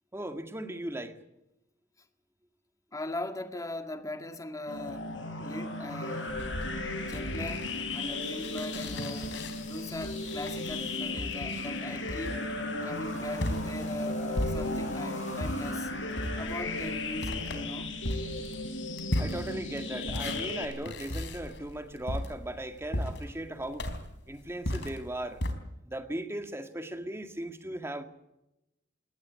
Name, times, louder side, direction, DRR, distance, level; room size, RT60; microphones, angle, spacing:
voice 1, 0.1-1.2 19.2-23.9 24.3-25.4 25.9-28.0, right 1 dB, 15° right, 2.0 m, -37 dB
voice 2, 2.9-6.5 7.0-9.4 9.7-12.5 12.8-15.9 16.4-17.9, left 1 dB, 20° left, 2.0 m, -40 dB
sound 1, 4.7-20.7, left 2 dB, 85° left, 4.9 m, -35 dB
sound 2, 6.3-15.0 15.4-25.5, left 1 dB, 70° left, 3.9 m, -37 dB
sound 3, 8.2-17.6, left 5 dB, 40° left, 7.5 m, -54 dB
21.5 x 18.5 x 8.4 m
head